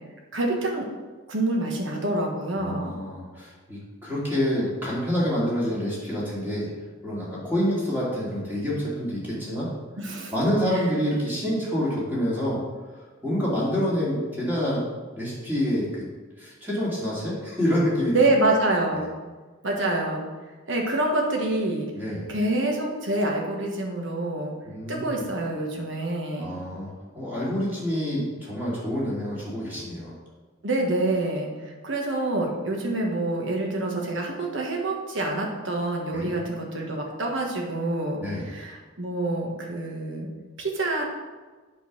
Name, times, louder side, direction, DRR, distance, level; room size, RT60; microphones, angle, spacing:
voice 1, 0.3-0.9 1.3-3.0 10.0-10.3 10.7-10.8 18.1-19.1 19.6-20.2 20.7-21.9 22.3-24.5 24.9-26.5 30.6-40.3 40.6-41.0, right 2 dB, 60° right, 0 dB, 1.4 m, -26 dB
voice 2, 2.6-6.7 7.0-9.7 10.3-12.6 13.2-14.8 15.1-16.0 16.4-18.1 18.9-19.0 21.9-22.3 24.7-25.1 26.4-30.1 36.1-36.3 38.2-38.5, equal, 10° right, -7 dB, 2.3 m, -27 dB
8.1 x 3.9 x 6.0 m, 1.4 s
head